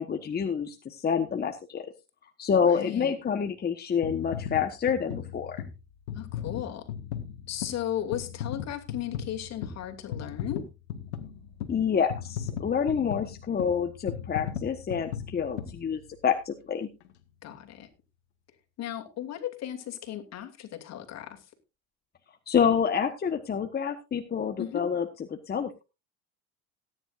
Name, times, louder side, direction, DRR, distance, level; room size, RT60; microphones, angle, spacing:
voice 1, 0.0-1.9 2.4-5.6 11.7-16.9 22.5-25.0 25.3-25.8, left 7 dB, 30° left, 6 dB, 1.3 m, -28 dB
voice 2, 2.6-3.1 6.1-6.9 7.5-10.6 17.4-17.9 18.8-21.5 24.6-24.9, left 11 dB, 50° left, 6 dB, 2.7 m, -36 dB
sound 1, 4.0-16.4 17.0-17.1, left 8 dB, 85° left, 1.7 m, -38 dB
18.0 x 10.0 x 2.6 m, 0.28 s
supercardioid pair, 85°, 33 cm